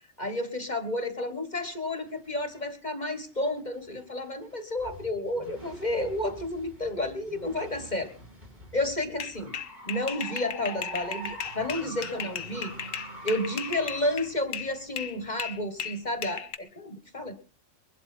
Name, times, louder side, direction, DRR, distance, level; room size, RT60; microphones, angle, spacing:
voice 1, 0.2-8.1 8.7-9.6 9.9-12.7 13.2-17.3, left 1 dB, 35° left, 9 dB, 1.6 m, -31 dB
sound 1, 1.6-2.7 3.1-15.7, right 1 dB, 40° right, 3.6 m, -46 dB
sound 2, 9.2-14.7 15.0-16.6, left 8 dB, 80° left, 1.4 m, -36 dB
22.0 x 12.0 x 4.4 m, 0.37 s
omnidirectional pair, 1.4 m